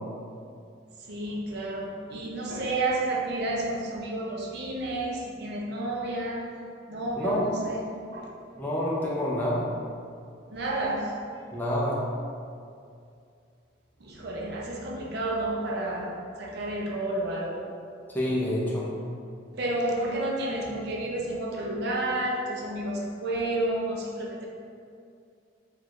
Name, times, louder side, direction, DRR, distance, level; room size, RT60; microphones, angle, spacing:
voice 1, 1.1-6.5 6.9-7.8 8.1-8.3 10.5-11.1 14.0-16.1 16.4-17.6 19.5-24.5, right 1 dB, 55° right, -2 dB, 0.5 m, -30 dB
voice 2, 7.2-7.5 8.6-9.7 11.5-12.0 18.1-18.9, equal, 10° left, -6 dB, 0.5 m, -27 dB
3.9 x 2.3 x 2.9 m, 2.4 s
head